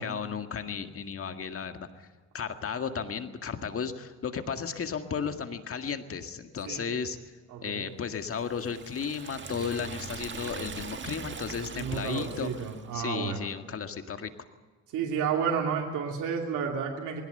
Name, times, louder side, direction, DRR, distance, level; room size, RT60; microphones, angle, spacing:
voice 1, 0.0-2.1 2.3-7.2 7.6-12.5 12.9-14.3, left 6 dB, 45° left, 7 dB, 1.9 m, -34 dB
voice 2, 7.5-7.9 11.7-13.5 14.9-17.2, right 6 dB, 85° right, 1 dB, 2.7 m, -31 dB
Liquid, 8.3-13.0, right 5 dB, 40° right, 1.7 m, -41 dB
21.0 x 17.0 x 7.9 m, 1.3 s
cardioid pair, 90°, 30 cm